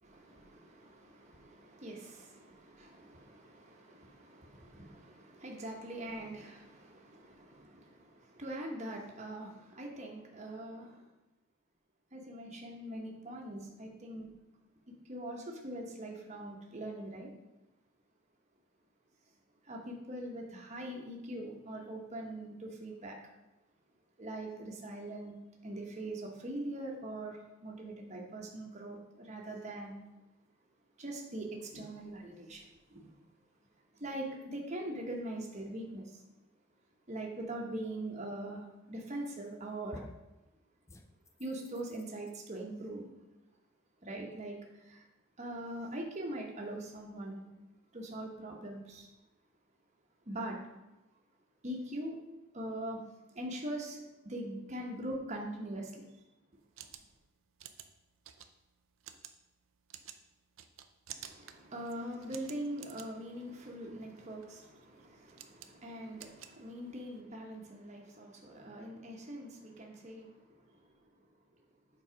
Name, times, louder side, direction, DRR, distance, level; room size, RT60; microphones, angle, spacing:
voice 1, 0.0-11.1 12.1-14.3 14.9-17.3 19.6-23.2 24.2-25.3 25.6-30.0 31.0-33.1 33.9-36.2 37.1-40.0 41.4-43.1 44.0-45.1 45.4-47.4 47.9-49.1 50.3-50.6 51.6-52.2 52.5-53.0 53.3-56.1 61.2-71.2, right 1 dB, 35° right, 0 dB, 1.1 m, -42 dB
sound 1, 39.1-39.5 39.9-40.3 40.9-42.3, left 1 dB, 15° left, 0.4 m, -52 dB
sound 2, 56.5-67.2, right 10 dB, 70° right, 0.5 m, -53 dB
7.2 x 4.0 x 5.0 m, 1.0 s
head